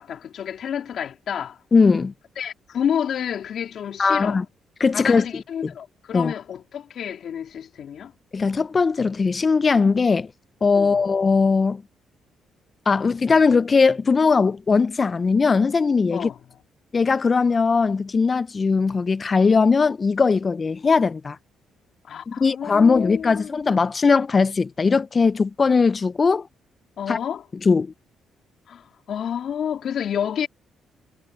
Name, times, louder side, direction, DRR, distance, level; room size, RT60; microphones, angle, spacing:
voice 1, 0.0-1.6 2.4-4.4 4.9-8.1 10.7-11.0 16.1-16.4 22.0-23.6 27.0-27.4 28.7-30.5, left 8 dB, 65° left, 3.6 m, -29 dB
voice 2, 1.7-2.1 4.0-4.5 4.8-5.3 5.6-5.7 6.1-6.3 8.3-10.3 10.6-11.8 12.9-16.3 16.9-21.4 22.3-26.5 27.1-27.2 27.6-27.9, left 4 dB, 35° left, 0.4 m, -19 dB
cardioid pair, 90°, 0 cm